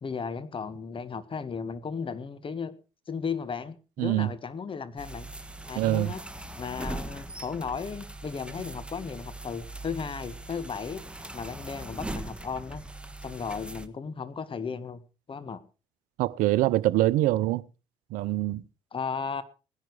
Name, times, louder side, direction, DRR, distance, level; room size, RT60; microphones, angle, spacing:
voice 1, 0.0-2.8 3.1-5.3 5.7-6.2 6.6-11.0 11.3-12.8 13.2-15.0 15.3-15.6 18.9-19.4, left 5 dB, 35° left, 1.7 m, -35 dB
voice 2, 4.0-4.3 5.7-6.1 16.2-17.6 18.1-18.6, right 15 dB, 65° right, 0.6 m, -24 dB
sound 1, 5.0-13.9, right 2 dB, 5° right, 1.5 m, -40 dB
18.5 x 10.5 x 4.8 m
hypercardioid pair, 50°, 15 cm